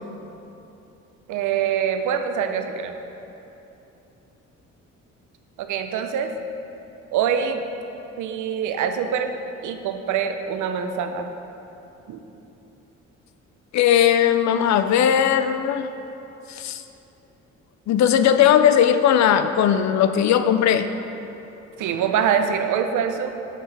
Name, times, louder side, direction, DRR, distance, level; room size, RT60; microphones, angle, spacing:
voice 1, 1.3-2.9 5.6-6.3 7.1-7.7 8.2-9.4 9.6-11.3 12.1-12.2 21.8-23.3, right 7 dB, 80° right, 7 dB, 0.6 m, -24 dB
voice 2, 13.7-15.9 16.6-16.8 17.9-20.9, left 9 dB, 65° left, 10 dB, 0.5 m, -18 dB
7.7 x 6.6 x 3.3 m, 3.0 s
cardioid pair, 90°, 30 cm